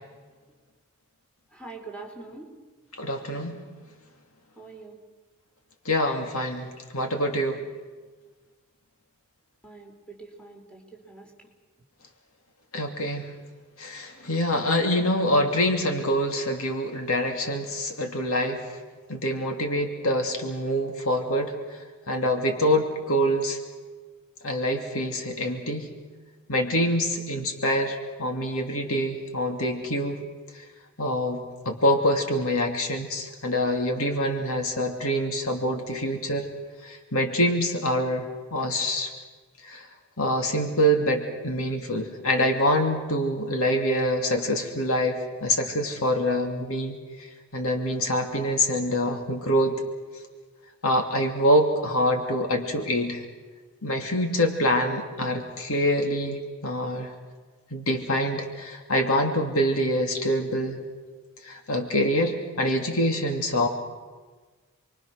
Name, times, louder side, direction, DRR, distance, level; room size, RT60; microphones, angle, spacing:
voice 1, 1.5-2.5 4.6-5.0 9.6-11.3, right 3 dB, 5° left, 0 dB, 4.4 m, -43 dB
voice 2, 3.0-3.6 5.8-7.6 12.7-13.3 13.8-18.8 19.1-23.6 24.4-25.9 26.5-30.2 30.5-30.6 31.0-36.5 36.8-38.3 38.5-39.1 39.6-39.9 40.2-49.8 50.8-53.2 53.8-57.1 57.7-60.8 61.4-63.7, equal, 70° left, 3 dB, 2.7 m, -25 dB
29.5 x 23.0 x 6.5 m, 1.4 s
head